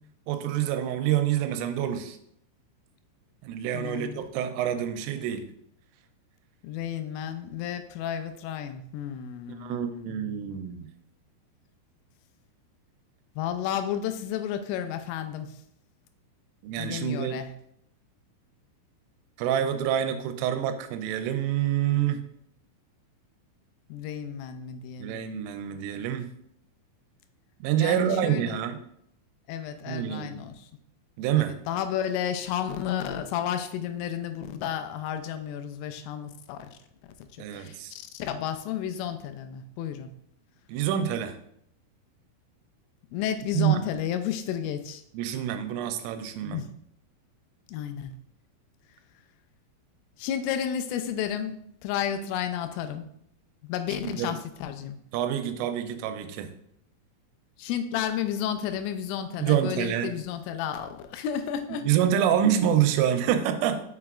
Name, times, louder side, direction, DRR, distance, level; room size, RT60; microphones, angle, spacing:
voice 1, 0.3-2.2 3.4-5.5 9.6-10.9 16.6-17.4 19.4-22.2 25.0-26.3 27.6-28.8 29.9-30.4 31.2-31.6 37.4-37.9 40.7-41.4 43.5-43.8 45.1-46.6 54.0-54.3 55.1-56.5 59.4-60.1 61.8-63.8, right 10 dB, 90° right, 8 dB, 3.2 m, -27 dB
voice 2, 3.7-4.3 6.6-10.4 13.4-15.5 16.8-17.5 23.9-25.2 27.8-28.6 29.5-30.7 31.4-36.8 37.3-40.1 43.1-45.0 46.5-46.7 47.7-48.1 50.2-53.1 53.6-55.0 57.6-61.9, left 9 dB, 85° left, 8 dB, 3.1 m, -32 dB
6.7 x 6.1 x 2.4 m, 0.72 s
omnidirectional pair, 5.7 m